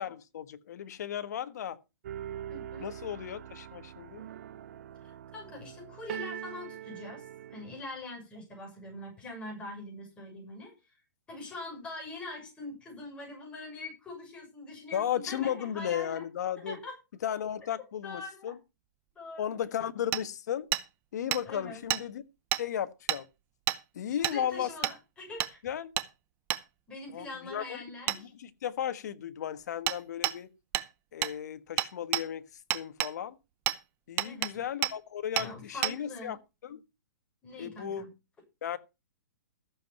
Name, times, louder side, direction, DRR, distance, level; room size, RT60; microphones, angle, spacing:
voice 1, 0.0-1.8 2.8-4.3 14.9-16.8 17.2-18.5 19.4-20.7 21.1-22.2 22.5-23.2 23.9-24.7 25.6-25.9 27.1-30.5 31.1-32.4 32.7-33.3 34.1-36.8 37.6-38.0 38.6-38.8, left 9 dB, 60° left, 1.5 m, -35 dB
sound 1, 2.0-7.8, right 11 dB, 50° right, 0.9 m, -43 dB
voice 2, 2.5-2.9 5.0-11.0 11.3-16.2 16.6-16.9 18.0-18.5 19.1-19.5 21.4-21.9 24.1-25.6 26.9-28.3 34.2-34.6 35.3-36.3 37.4-38.1, left 2 dB, 10° left, 6.6 m, -43 dB
Hammer, 20.1-20.2 20.7-20.8 21.3-21.4 21.9-22.0 22.5-22.6 23.1-23.2 23.7-23.8 24.2-24.4 24.8-25.0 25.4-25.5 26.0-26.1 26.5-26.6 28.1-28.2 29.9-30.0 30.2-30.4 30.7-30.9 31.2-31.3 31.8-32.2 32.7-33.1 33.7-33.8 34.2-34.5 34.8-34.9 35.4-35.5 35.8-35.9, right 15 dB, 20° right, 0.7 m, -29 dB
14.5 x 7.6 x 5.5 m
hypercardioid pair, 165°, 10 cm